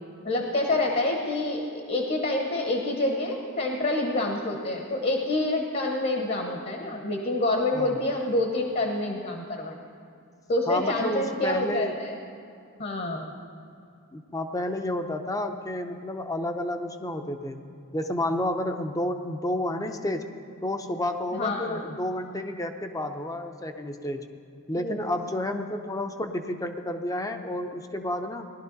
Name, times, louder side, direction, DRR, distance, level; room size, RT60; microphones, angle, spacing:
voice 1, 0.2-9.8 10.5-12.2 12.8-13.3 21.3-21.8 24.7-25.1, left 2 dB, 45° left, 2 dB, 1.1 m, -27 dB
voice 2, 10.7-11.9 14.1-17.6 17.9-20.2 20.6-24.2 24.7-28.5, left 1 dB, 15° left, 7 dB, 0.6 m, -30 dB
18.0 x 11.5 x 4.0 m, 2.4 s
head